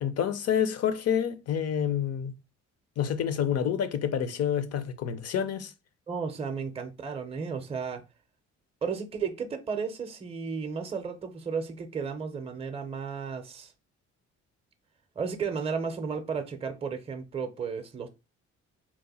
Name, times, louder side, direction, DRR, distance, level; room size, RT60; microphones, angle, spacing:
voice 1, 0.0-2.3 3.0-5.7, left 8 dB, 55° left, 0.6 m, -28 dB
voice 2, 6.1-8.0 8.8-13.7 15.2-18.1, right 5 dB, 20° right, 0.5 m, -33 dB
2.9 x 2.1 x 4.0 m
cardioid pair, 90°, 30 cm